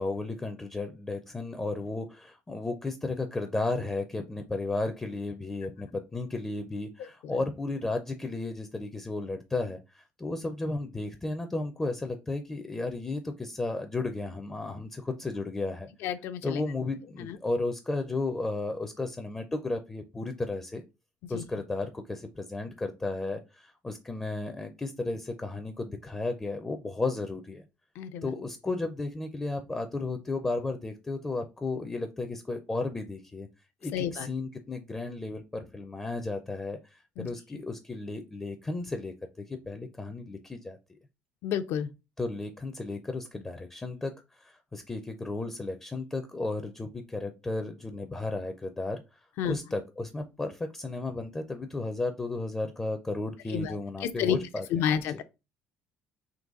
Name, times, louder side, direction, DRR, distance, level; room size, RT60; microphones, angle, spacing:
voice 1, 0.0-15.9 16.4-20.8 21.3-27.6 28.2-33.5 33.8-41.0 42.2-49.2 49.4-55.2, left 2 dB, 10° left, 0.4 m, -34 dB
voice 2, 16.0-16.6 17.2-17.4 21.3-21.4 28.0-28.3 33.9-34.3 37.2-37.3 41.4-41.9 49.4-49.5 53.5-54.4 54.7-55.2, left 9 dB, 70° left, 0.5 m, -30 dB
3.9 x 2.9 x 3.7 m
cardioid pair, 155°, 4 cm